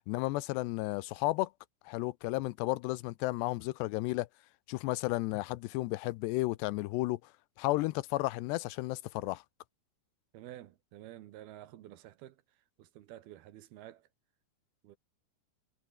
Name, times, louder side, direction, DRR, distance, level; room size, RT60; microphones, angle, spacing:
voice 1, 0.1-1.5 1.9-4.3 4.7-7.2 7.6-9.4, left 20 dB, 85° left, 2.8 m, -33 dB
voice 2, 10.3-12.4 12.8-14.1 14.8-15.0, right 13 dB, 70° right, 2.9 m, -50 dB
omnidirectional pair, 4.9 m